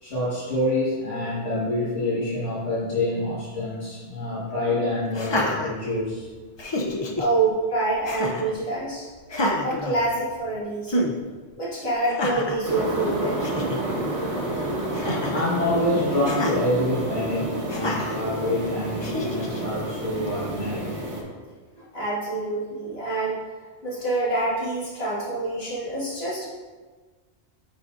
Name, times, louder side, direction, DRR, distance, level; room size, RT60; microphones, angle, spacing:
voice 1, 0.0-6.3 15.0-21.0 24.1-24.2, left 1 dB, 85° left, -9 dB, 1.7 m, -27 dB
Laughter, 5.1-6.2 6.6-7.3 8.0-8.5 9.3-10.5 10.9-11.1 12.0-12.6 13.1-13.2 13.4-13.8 14.9-15.5 16.2-16.6 17.7-18.2 19.0-19.6, left 1 dB, 35° left, 0.4 m, -28 dB
voice 2, 7.2-9.1 9.6-11.1 11.6-13.4 21.9-23.4 23.8-26.5, right 2 dB, 60° left, -8 dB, 2.1 m, -26 dB
sound 1, 12.6-21.2, right 1 dB, 80° right, 1.4 m, -29 dB
9.1 x 4.1 x 2.5 m, 1.4 s
omnidirectional pair, 1.2 m